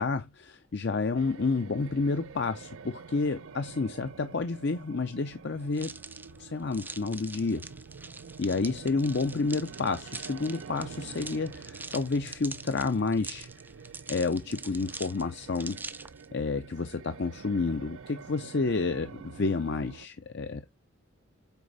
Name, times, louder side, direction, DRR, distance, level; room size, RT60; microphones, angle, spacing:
voice 1, 0.0-5.9 6.4-7.6 8.4-13.5 14.1-15.8 16.3-20.7, left 3 dB, 55° left, 0.6 m, -30 dB
sound 1, 1.2-20.1, right 5 dB, 75° right, 0.5 m, -47 dB
sound 2, 5.7-16.3, right 3 dB, 10° right, 0.4 m, -44 dB
8.1 x 4.4 x 4.0 m
head